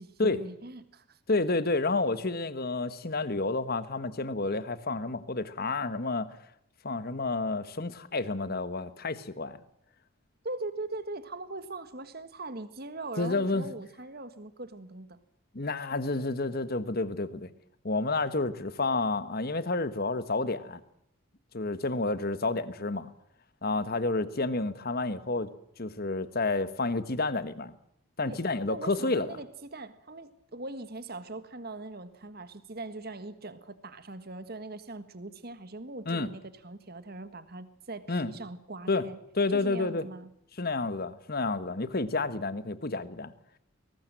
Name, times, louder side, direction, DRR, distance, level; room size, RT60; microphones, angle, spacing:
voice 1, 0.0-1.2 10.4-15.2 28.2-28.4 28.7-39.2 39.5-40.3, right 2 dB, 45° right, 12 dB, 1.7 m, -41 dB
voice 2, 1.3-6.3 6.8-9.6 13.2-13.7 15.5-17.5 17.8-20.8 21.5-23.1 23.6-25.5 25.8-27.7 28.2-29.4 36.0-36.3 38.1-38.3 38.9-39.1 39.3-40.1 40.6-43.3, left 3 dB, 45° left, 13 dB, 1.3 m, -30 dB
22.0 x 19.0 x 7.6 m, 0.75 s
head